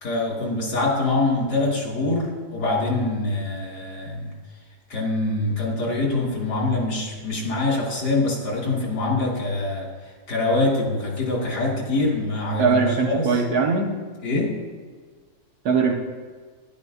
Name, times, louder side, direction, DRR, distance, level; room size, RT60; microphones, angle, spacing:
voice 1, 0.0-4.3 4.9-9.9 10.3-12.7 13.0-13.4 14.2-14.6, left 2 dB, 90° left, -3 dB, 2.8 m, -24 dB
voice 2, 12.6-14.0 15.6-15.9, right 5 dB, 70° right, 2 dB, 1.6 m, -20 dB
12.5 x 10.5 x 2.5 m, 1.5 s
omnidirectional pair, 1.7 m